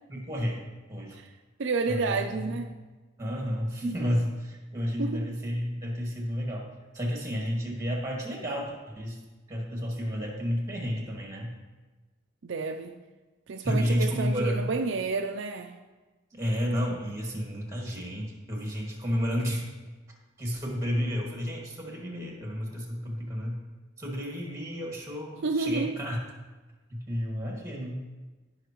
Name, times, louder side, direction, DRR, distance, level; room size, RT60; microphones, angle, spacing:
voice 1, 0.1-0.6 0.9-1.2 1.9-2.6 3.2-9.2 9.5-11.5 13.6-14.6 16.3-19.6 20.4-23.6 24.0-26.2 26.9-28.0, equal, 15° right, -1 dB, 2.0 m, -31 dB
voice 2, 1.6-2.7 5.0-5.3 12.4-12.9 13.5-15.7 25.4-26.0, right 4 dB, 65° right, 5 dB, 0.5 m, -30 dB
17.0 x 5.7 x 3.0 m, 1.2 s
head